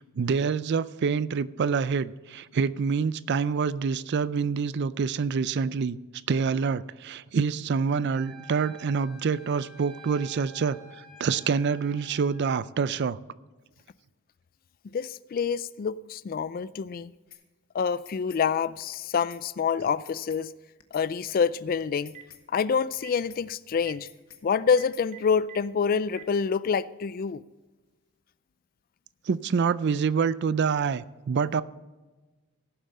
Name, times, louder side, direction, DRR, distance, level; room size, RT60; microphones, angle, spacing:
voice 1, 0.0-6.0 6.3-13.2 29.3-31.6, right 5 dB, 50° right, 0.4 m, -26 dB
Wind instrument woodwind instrument, 8.1-12.4, equal, ahead, 2.3 m, -50 dB
voice 2, 14.8-17.1 17.7-20.5 20.9-22.2 22.5-24.1 24.4-27.4, left 6 dB, 40° left, 0.3 m, -27 dB
sound 1, 17.3-17.4 17.8-18.4 18.8-19.0 19.3-19.4 19.8-20.4 20.8-21.0 21.3-21.4 21.8-22.4 22.8-23.0 23.3-23.4 23.8-24.4 24.8-25.0, left 11 dB, 70° left, 1.2 m, -50 dB
Telephone, 21.9-22.4 22.9-23.2 23.7-23.9 24.7-25.6 26.1-26.2, right 12 dB, 35° right, 1.1 m, -45 dB
17.0 x 7.4 x 4.2 m
head